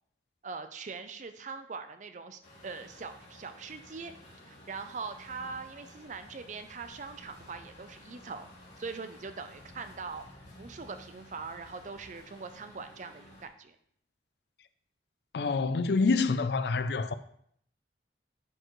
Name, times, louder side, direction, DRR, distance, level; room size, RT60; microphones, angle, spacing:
voice 1, 0.4-4.1 4.5-8.5 8.8-10.3 10.6-13.8, right 4 dB, 45° right, 0.4 m, -42 dB
Truck, 2.4-13.5, left 1 dB, 85° left, 2.8 m, -53 dB
voice 2, 15.3-17.1, left 4 dB, 65° left, 0.4 m, -27 dB
10.5 x 4.6 x 3.1 m
head